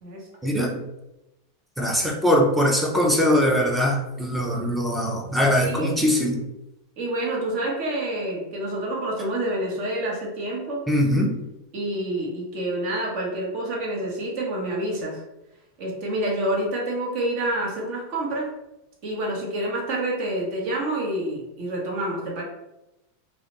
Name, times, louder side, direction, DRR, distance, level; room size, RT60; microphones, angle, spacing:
voice 1, 0.4-0.8 1.8-6.4 10.9-11.4, equal, 5° right, 0 dB, 0.5 m, -21 dB
voice 2, 5.6-6.0 7.0-10.9 11.7-15.2 15.8-18.5 19.0-22.4, right 1 dB, 55° right, -1 dB, 0.9 m, -28 dB
2.3 x 2.1 x 2.9 m, 0.92 s
supercardioid pair, 125°, 0 cm